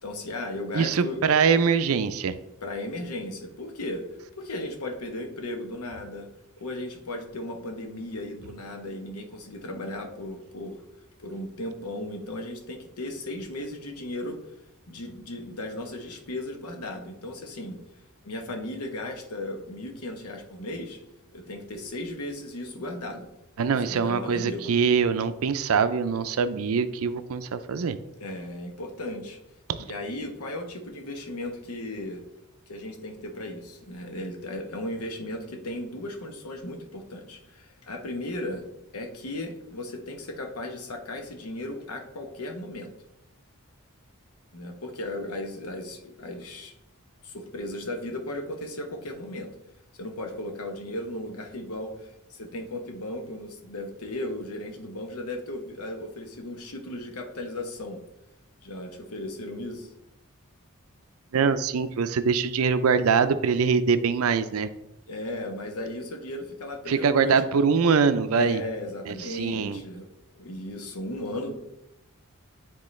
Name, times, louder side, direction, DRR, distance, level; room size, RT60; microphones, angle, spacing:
voice 1, 0.0-1.2 2.6-4.0 4.4-6.3 6.6-10.8 11.2-14.4 14.9-17.8 18.2-21.0 21.3-23.3 23.7-24.7 28.2-29.4 29.8-32.2 32.7-42.9 44.5-46.7 47.2-49.5 49.9-58.0 58.6-59.9 65.1-67.3 68.3-70.1 70.3-71.6, left 1 dB, 85° left, 4 dB, 1.0 m, -36 dB
voice 2, 0.7-2.3 23.6-28.0 61.3-64.7 66.9-68.6 69.1-69.8, right 5 dB, 70° right, 12 dB, 0.4 m, -23 dB
9.8 x 3.7 x 3.2 m, 0.89 s
head